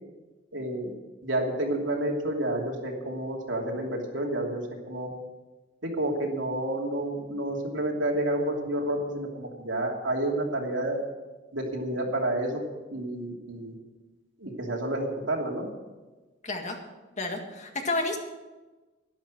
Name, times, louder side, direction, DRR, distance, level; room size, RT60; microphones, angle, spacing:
voice 1, 0.5-0.9 1.2-5.1 5.8-11.0 11.5-12.6 12.9-13.7 14.4-15.7, right 1 dB, 85° right, 0 dB, 2.8 m, -30 dB
voice 2, 16.4-16.8 17.2-18.2, left 2 dB, 40° left, 3 dB, 1.9 m, -30 dB
12.0 x 11.5 x 6.3 m, 1.2 s
head